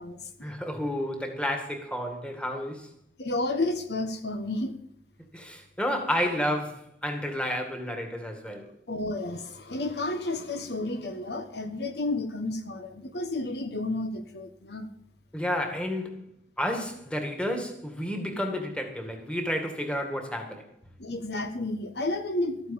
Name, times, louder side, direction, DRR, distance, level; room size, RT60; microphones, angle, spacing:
voice 1, 0.4-2.9 5.3-8.7 15.3-16.2 16.6-20.6, equal, 5° left, 2.0 m, -31 dB
voice 2, 3.2-4.8 8.9-14.9 21.0-22.7, left 2 dB, 65° left, 1.2 m, -31 dB
13.5 x 9.3 x 7.2 m
head